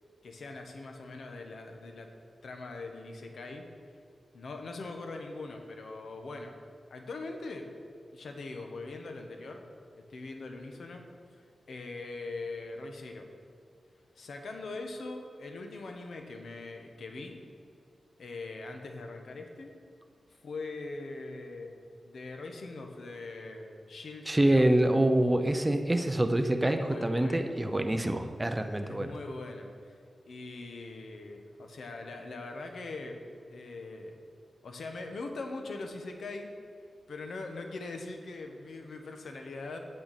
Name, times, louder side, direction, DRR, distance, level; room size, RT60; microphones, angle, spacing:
voice 1, 0.2-2.1 2.4-3.7 4.3-6.5 6.9-7.7 8.1-9.6 10.1-11.0 11.4-13.3 14.2-17.4 18.2-19.8 20.4-21.8 22.0-24.7 26.4-27.5 28.8-29.9 30.3-33.2 33.5-34.2 34.6-36.5 37.1-39.8, left 3 dB, 80° left, 4 dB, 1.0 m, -41 dB
voice 2, 24.3-29.1, right 1 dB, 15° right, 7 dB, 0.6 m, -26 dB
8.9 x 8.4 x 4.1 m, 2.3 s
wide cardioid pair, 105°, 0 cm